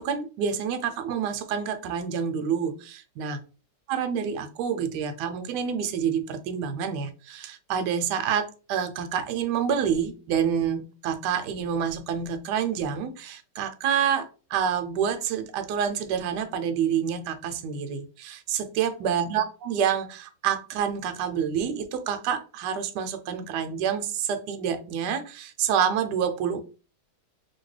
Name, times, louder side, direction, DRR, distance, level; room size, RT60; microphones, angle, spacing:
voice 1, 0.0-3.4 3.9-26.6, right 8 dB, 75° right, 9 dB, 1.1 m, -28 dB
2.8 x 2.8 x 3.1 m, 0.35 s
omnidirectional pair, 2.0 m